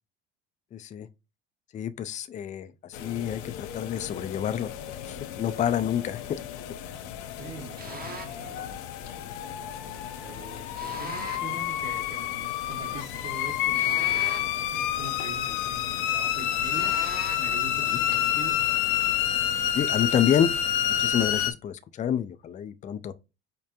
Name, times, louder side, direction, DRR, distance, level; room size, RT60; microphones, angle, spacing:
voice 1, 0.7-1.1 1.7-4.7 5.0-6.4 19.7-20.5 21.0-23.1, left 9 dB, 25° left, 0.3 m, -28 dB
sound 1, 2.9-21.5, left 11 dB, 70° left, 0.6 m, -29 dB
voice 2, 7.4-8.8 10.2-17.0 17.4-18.6, right 4 dB, 45° right, 1.5 m, -43 dB
sound 2, 7.8-8.5 10.8-11.6 13.7-14.7 16.7-17.6, right 3 dB, 30° right, 0.9 m, -40 dB
5.1 x 2.1 x 2.8 m
hypercardioid pair, 70°, 32 cm